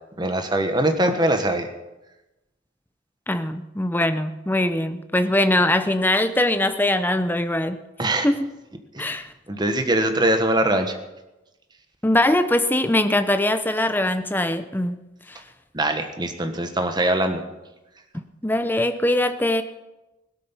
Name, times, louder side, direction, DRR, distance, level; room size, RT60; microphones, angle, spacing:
voice 1, 0.2-1.7 8.0-8.3 8.9-9.0 9.5-11.0 15.7-17.4, right 1 dB, 25° right, 6 dB, 1.4 m, -22 dB
voice 2, 3.3-7.8 8.2-8.5 9.0-9.3 12.0-15.0 15.3-15.4 18.1-19.6, left 1 dB, 10° left, 10 dB, 0.7 m, -22 dB
17.0 x 12.5 x 5.7 m, 1.0 s
head